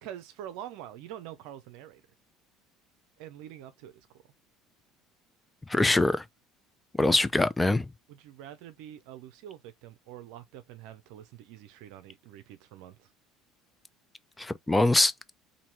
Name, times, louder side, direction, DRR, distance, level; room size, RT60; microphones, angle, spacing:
voice 1, 0.0-2.0 3.2-4.2 8.1-13.1, right 11 dB, 70° right, 0.5 m, -45 dB
voice 2, 5.7-6.2 7.0-7.9 14.4-15.1, left 2 dB, 10° left, 0.4 m, -23 dB
2.8 x 2.7 x 4.3 m
hypercardioid pair, 75°, 0 cm